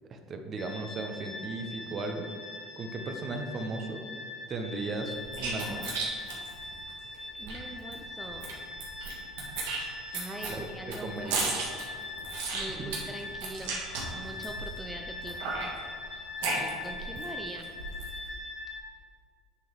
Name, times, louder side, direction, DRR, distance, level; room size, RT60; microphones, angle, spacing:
voice 1, 0.1-2.3 2.8-4.0 4.5-6.0 10.5-10.7 11.0-11.5 12.8-12.9 16.5-16.7, right 3 dB, 40° right, 5 dB, 0.8 m, -36 dB
sound 1, 0.6-18.8, left 3 dB, 35° left, 1.6 m, -42 dB
sound 2, 5.1-7.6 7.9-8.0 8.2-9.1 9.4-14.8 15.2-17.2 17.6-18.2, right 4 dB, 85° right, 1.6 m, -34 dB
voice 2, 7.4-8.5 10.1-11.6 12.5-13.9 14.1-15.8 16.0-17.7, right 1 dB, 10° right, 2 dB, 0.5 m, -43 dB
8.5 x 3.8 x 4.7 m, 2.1 s
supercardioid pair, 100°, 0 cm